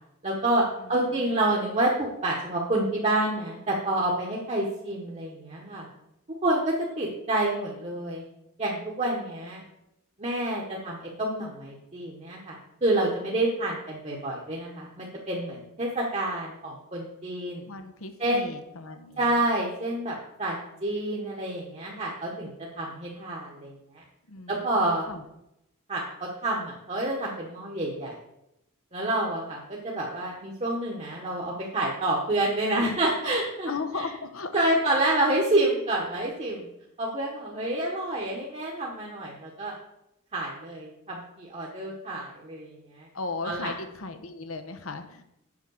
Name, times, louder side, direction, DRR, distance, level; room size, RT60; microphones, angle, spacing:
voice 1, 0.2-0.6 0.9-5.9 6.4-8.2 8.6-9.6 10.2-17.6 18.2-18.5 19.2-20.5 20.8-22.5 22.8-24.0 24.5-25.1 25.9-28.1 28.9-33.7 34.5-36.7 37.0-39.7 40.3-43.1 43.4-43.7, right 1 dB, 30° right, -2 dB, 1.3 m, -28 dB
voice 2, 0.8-1.7 17.6-19.4 24.3-25.3 33.6-35.2 43.1-45.2, left 3 dB, 70° left, 9 dB, 1.0 m, -37 dB
7.3 x 5.9 x 6.4 m, 0.85 s
head